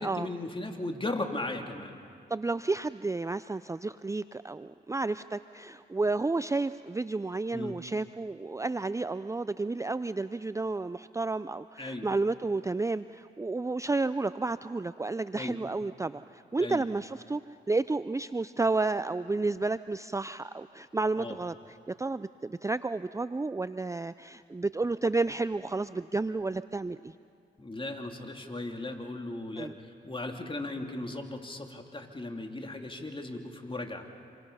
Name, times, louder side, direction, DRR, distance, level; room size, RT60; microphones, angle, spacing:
voice 1, 0.0-1.9 7.5-7.8 11.8-12.1 15.3-15.6 16.6-16.8 21.2-21.4 27.6-34.0, left 2 dB, 25° left, 3 dB, 3.1 m, -37 dB
voice 2, 2.3-17.4 17.7-21.5 21.9-27.1 29.6-29.7, right 3 dB, 15° right, 14 dB, 0.5 m, -31 dB
27.5 x 23.5 x 5.7 m, 2.4 s
supercardioid pair, 45°, 20 cm